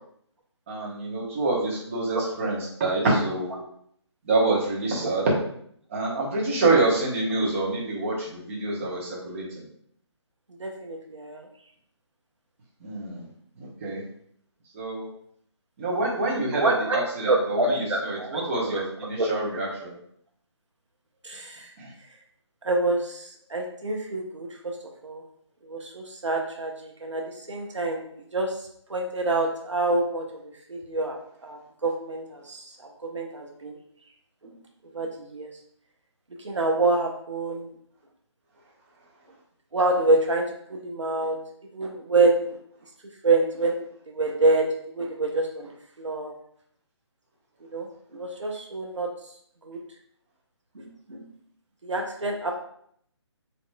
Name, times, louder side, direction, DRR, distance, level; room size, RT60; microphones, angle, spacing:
voice 1, 0.7-3.5 4.2-5.3 5.9-9.6 12.8-13.2 13.6-14.0 14.7-15.1 15.8-20.0 21.8-21.9, right 2 dB, 25° right, -5 dB, 0.9 m, -26 dB
voice 2, 10.6-11.5 16.5-17.0 17.3-18.4 18.7-18.8 19.2-19.3 21.2-21.7 22.6-24.6 25.0-25.2 25.6-28.6 28.9-32.7 33.0-33.8 34.4-34.5 34.9-35.5 36.4-37.7 39.7-40.4 40.7-41.4 41.7-42.6 43.2-46.3 47.7-49.1 49.6-49.8 50.7-51.3 51.8-52.6, right 2 dB, 80° right, 1 dB, 0.7 m, -27 dB
4.0 x 2.9 x 2.2 m, 0.66 s
figure-of-eight pair, 150°, 15 cm